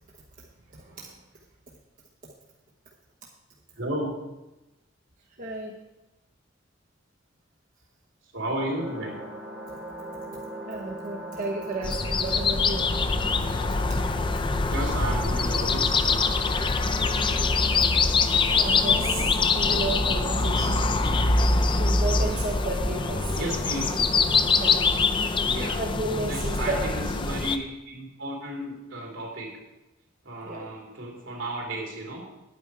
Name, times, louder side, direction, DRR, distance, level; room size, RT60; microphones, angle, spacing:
voice 1, 0.7-1.2 2.2-2.3 5.4-5.7 10.7-12.9 13.3-13.5 13.7-13.8 14.1-14.7 16.9-17.0 18.6-20.8 21.8-23.3 24.6-24.8 25.8-26.8 30.4-30.6, right 2 dB, 45° right, -2 dB, 1.0 m, -33 dB
voice 2, 3.8-4.1 8.3-9.2 14.7-16.1 23.3-23.9 25.4-25.8 26.3-29.5 30.2-32.2, right 1 dB, 80° right, -1 dB, 2.9 m, -33 dB
sound 1, 8.8-24.9, right 1 dB, 10° right, 1.8 m, -39 dB
sound 2, 11.8-27.6, left 4 dB, 25° left, 0.5 m, -24 dB
9.0 x 8.9 x 4.7 m, 0.99 s
head